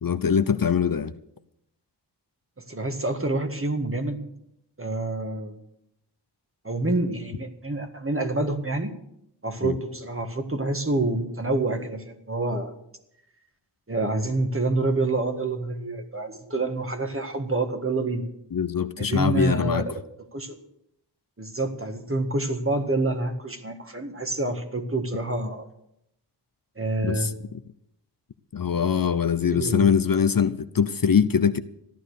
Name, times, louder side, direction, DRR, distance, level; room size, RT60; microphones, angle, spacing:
voice 1, 0.0-1.1 9.6-9.8 18.5-19.8 27.0-27.3 28.5-31.6, left 7 dB, 55° left, 0.7 m, -22 dB
voice 2, 2.6-4.2 4.8-5.6 6.6-8.9 9.4-12.7 13.9-18.3 19.0-19.9 20.3-20.6 21.4-25.7 26.8-27.3 29.5-29.9, right 2 dB, 30° right, 1.7 m, -27 dB
14.5 x 11.5 x 6.6 m
wide cardioid pair, 75°, 42 cm